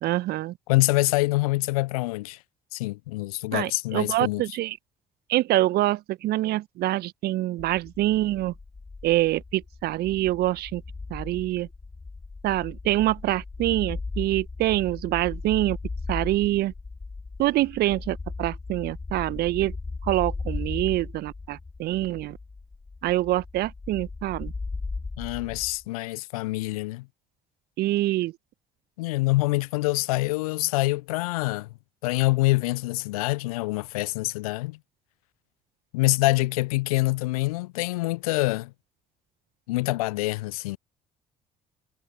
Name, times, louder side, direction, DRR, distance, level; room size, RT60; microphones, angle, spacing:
voice 1, 0.0-0.6 3.5-4.8 5.3-8.5 9.0-10.8 11.1-11.7 12.4-15.8 16.1-16.7 17.4-19.7 20.0-22.4 23.0-24.5 27.8-28.3, right 16 dB, 55° right, 1.5 m, -25 dB
voice 2, 0.7-2.4 2.7-4.4 25.2-27.1 29.0-31.7 32.0-34.8 35.9-38.7 39.7-40.8, left 21 dB, 70° left, 0.7 m, -25 dB
sound 1, 7.6-25.8, left 3 dB, 20° left, 3.8 m, -37 dB
figure-of-eight pair, 55°, 19 cm